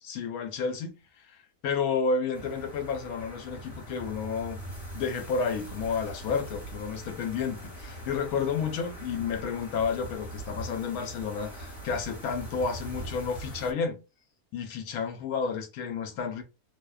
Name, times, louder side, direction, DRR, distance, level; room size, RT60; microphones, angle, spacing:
voice 1, 0.0-1.4 1.6-4.6 4.9-14.0 14.5-16.4, left 5 dB, 75° left, 1.0 m, -31 dB
sound 1, 2.3-13.7, right 1 dB, 25° left, 1.1 m, -42 dB
2.7 x 2.1 x 2.3 m
omnidirectional pair, 1.7 m